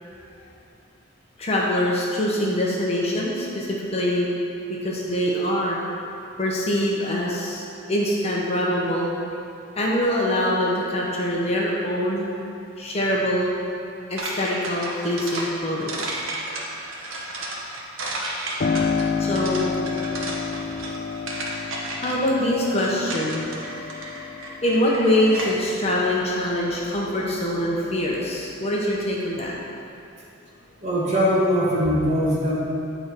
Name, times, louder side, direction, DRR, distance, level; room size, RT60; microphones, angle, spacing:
voice 1, 1.4-4.3 4.8-5.8 6.4-9.1 9.8-12.3 12.8-13.5 14.1-16.1 19.2-19.7 22.0-23.4 24.6-29.6, left 1 dB, 30° left, -4 dB, 0.9 m, -24 dB
sound 1, 14.2-25.7, right 1 dB, 80° right, 1.0 m, -33 dB
Piano, 18.6-27.0 27.4-28.5, left 5 dB, 45° left, 0.4 m, -30 dB
voice 2, 30.8-32.6, equal, 35° right, -6 dB, 1.4 m, -21 dB
9.1 x 4.4 x 4.5 m, 2.7 s
head